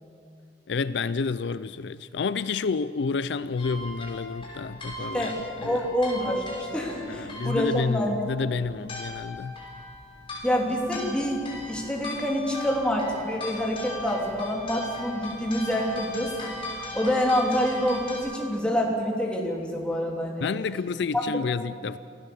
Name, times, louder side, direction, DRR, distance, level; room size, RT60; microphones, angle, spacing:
voice 1, 0.7-5.3 5.6-5.8 7.1-9.5 20.4-22.0, left 4 dB, 65° left, 15 dB, 0.4 m, -29 dB
sound 1, 3.6-18.2, left 1 dB, 30° left, 5.8 m, -38 dB
voice 2, 5.6-8.2 10.4-20.4 21.1-21.4, equal, 5° left, -2 dB, 3.2 m, -27 dB
27.0 x 15.5 x 7.1 m, 2.4 s
head